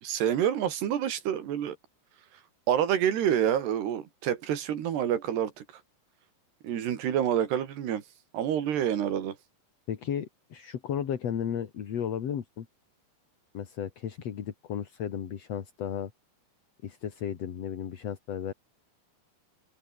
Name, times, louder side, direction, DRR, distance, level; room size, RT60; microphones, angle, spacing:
voice 1, 0.0-1.8 2.7-5.6 6.6-8.0 8.3-9.4, right 9 dB, 80° right, 4.5 m, -27 dB
voice 2, 9.9-12.7 13.5-16.1 16.8-18.5, left 8 dB, 50° left, 2.5 m, -34 dB
omnidirectional pair, 4.7 m